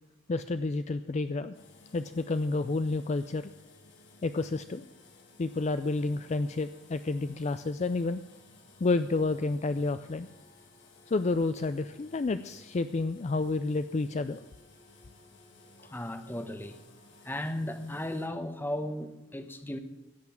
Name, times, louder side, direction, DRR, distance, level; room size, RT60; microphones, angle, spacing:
voice 1, 0.3-1.6 1.9-3.5 4.2-4.9 5.4-8.2 8.8-10.3 11.1-14.4 15.8-15.9, left 3 dB, 35° left, 11 dB, 0.4 m, -30 dB
sound 1, 1.5-18.3, left 2 dB, 80° left, 2.3 m, -57 dB
voice 2, 15.9-16.8 17.2-19.8, left 1 dB, 10° left, 8 dB, 1.0 m, -35 dB
16.5 x 6.0 x 8.8 m, 0.96 s
head